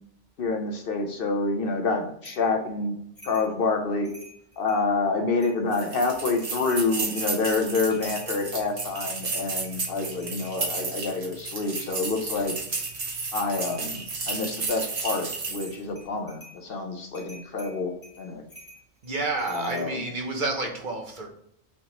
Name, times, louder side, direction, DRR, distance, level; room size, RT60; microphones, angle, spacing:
voice 1, 0.4-3.0 3.2-4.1 4.6-12.6 13.3-18.4 19.5-20.0, left 3 dB, 60° left, 4 dB, 0.8 m, -27 dB
sound 1, 2.2-2.5 3.2-3.5 3.9-4.9 5.4-5.9 6.3-7.4 7.7-10.6 11.7-12.0 12.7-13.0 13.4-14.1 14.6-15.2 15.5-16.6 17.1-19.9, equal, 15° left, 1.6 m, -49 dB
sound 2, 5.7-15.8, right 4 dB, 65° right, 1.5 m, -32 dB
voice 2, 19.0-21.3, right 2 dB, 50° right, 2 dB, 0.9 m, -29 dB
5.2 x 3.5 x 2.9 m, 0.71 s
omnidirectional pair, 1.2 m